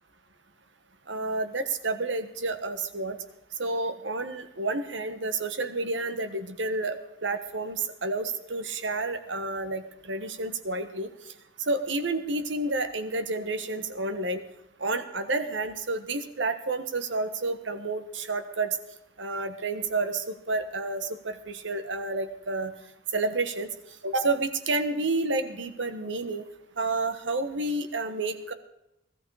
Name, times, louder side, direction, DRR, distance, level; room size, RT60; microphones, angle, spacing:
voice 1, 1.1-3.2 3.6-11.1 11.6-14.4 14.8-18.8 19.2-22.7 23.1-23.7 24.0-26.5 26.8-28.5, right 3 dB, 80° right, 9 dB, 1.4 m, -30 dB
18.0 x 14.0 x 4.9 m, 0.85 s
head